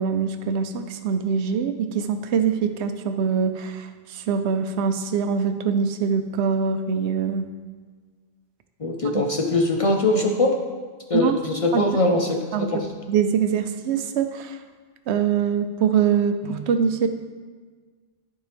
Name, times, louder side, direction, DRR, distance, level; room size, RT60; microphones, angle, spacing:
voice 1, 0.0-7.5 9.1-9.2 11.1-11.3 11.7-11.8 12.5-12.7 13.1-14.6 15.1-17.1, right 7 dB, 90° right, 8 dB, 0.9 m, -23 dB
voice 2, 8.8-10.5 11.1-12.9, left 2 dB, 40° left, 2 dB, 0.5 m, -22 dB
10.5 x 4.6 x 3.4 m, 1.5 s
omnidirectional pair, 1.1 m